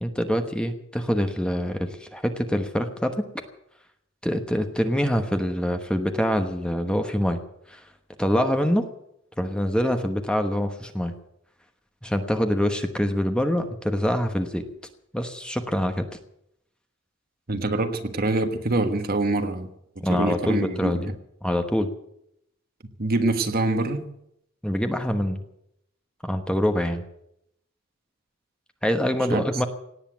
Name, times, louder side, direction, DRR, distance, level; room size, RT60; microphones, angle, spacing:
voice 1, 0.0-3.2 4.2-7.4 7.7-7.8 8.2-8.9 9.4-11.1 12.0-14.6 15.1-16.0 20.0-21.1 21.4-21.9 24.6-25.4 26.2-27.0 28.8-29.7, equal, 5° left, 6 dB, 1.1 m, -25 dB
voice 2, 17.5-19.7 20.1-20.9 23.0-24.1 29.3-29.4, right 2 dB, 45° right, 7 dB, 1.4 m, -25 dB
18.0 x 8.3 x 9.1 m, 0.78 s
head